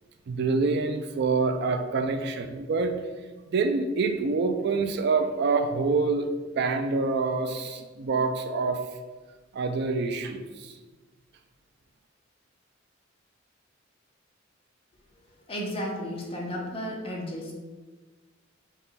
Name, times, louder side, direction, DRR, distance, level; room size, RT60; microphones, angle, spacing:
voice 1, 0.3-2.9 3.5-6.3 6.6-8.8 9.5-10.7, right 4 dB, 55° right, 7 dB, 0.4 m, -26 dB
voice 2, 15.2-17.5, equal, 30° left, -1 dB, 0.8 m, -34 dB
5.4 x 2.3 x 4.0 m, 1.3 s
head